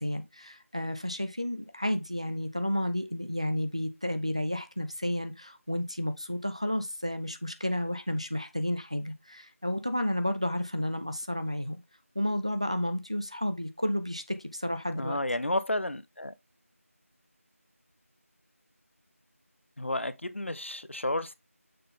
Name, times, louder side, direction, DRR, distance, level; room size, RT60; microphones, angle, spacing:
voice 1, 0.0-11.8 12.2-15.2, left 1 dB, 25° right, 0.4 m, -31 dB
voice 2, 15.0-16.3 19.8-21.3, left 1 dB, 55° left, 0.6 m, -31 dB
6.6 x 3.9 x 3.7 m
figure-of-eight pair, 180°, 8 cm